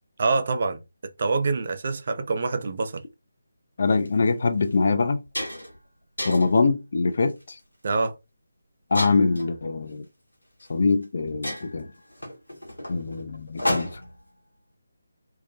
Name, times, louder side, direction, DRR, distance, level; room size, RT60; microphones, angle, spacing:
voice 1, 0.2-0.8 1.2-3.0 7.8-8.1, right 3 dB, 45° right, 0.4 m, -25 dB
voice 2, 3.8-5.2 6.3-7.4 8.9-10.0 10.7-11.9 12.9-13.9, left 4 dB, 50° left, 0.4 m, -23 dB
sound 1, 3.9-4.1 4.6-4.7 5.0-5.8 6.2-6.6 7.3-7.6 8.9-9.5 10.6-10.7 11.0-11.1 11.4-14.2, left 1 dB, 85° left, 0.9 m, -32 dB
2.3 x 2.1 x 2.6 m
figure-of-eight pair, 155°, 0 cm